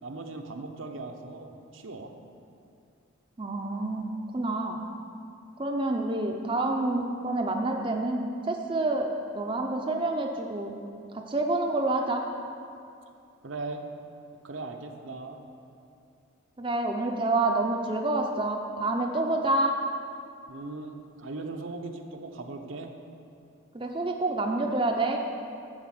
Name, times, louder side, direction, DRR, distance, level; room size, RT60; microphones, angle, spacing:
voice 1, 0.0-2.1 13.4-13.8 14.4-15.4 20.5-22.9, right 3 dB, 75° right, 4 dB, 0.8 m, -39 dB
voice 2, 3.4-4.1 4.3-4.8 5.6-10.7 11.1-12.2 16.6-19.7 23.7-25.2, right 2 dB, 25° right, 2 dB, 0.5 m, -28 dB
11.5 x 4.2 x 7.6 m, 2.5 s
head